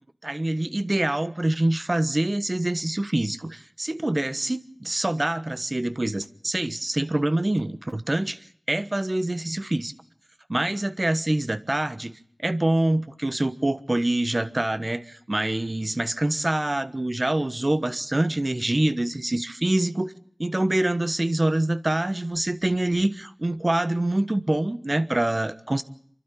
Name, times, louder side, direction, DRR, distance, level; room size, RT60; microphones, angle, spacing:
voice 1, 0.2-8.4 8.7-9.9 10.5-12.2 12.4-20.1 20.4-25.8, right 1 dB, 45° right, 1.2 m, -25 dB
28.0 x 12.0 x 8.4 m
wide cardioid pair, 40°, 0 cm